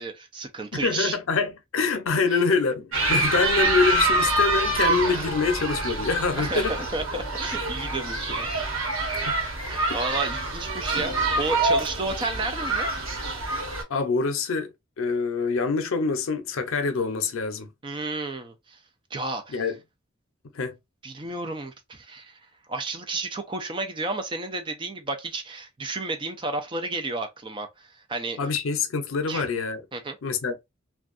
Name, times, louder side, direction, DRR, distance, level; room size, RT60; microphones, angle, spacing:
voice 1, 0.0-1.2 2.3-2.4 6.4-8.5 9.6-12.9 17.8-18.8 19.1-19.6 21.0-22.4 22.7-28.4 29.3-29.5 29.9-30.2, right 3 dB, 25° right, 0.4 m, -32 dB
voice 2, 0.7-6.8 9.2-9.3 13.9-14.7 15.0-17.7 19.5-19.8 20.5-20.8 28.4-29.8 30.2-30.5, left 4 dB, 85° left, 0.5 m, -25 dB
sound 1, 2.9-13.8, right 2 dB, 90° right, 1.1 m, -26 dB
2.5 x 2.2 x 2.4 m
head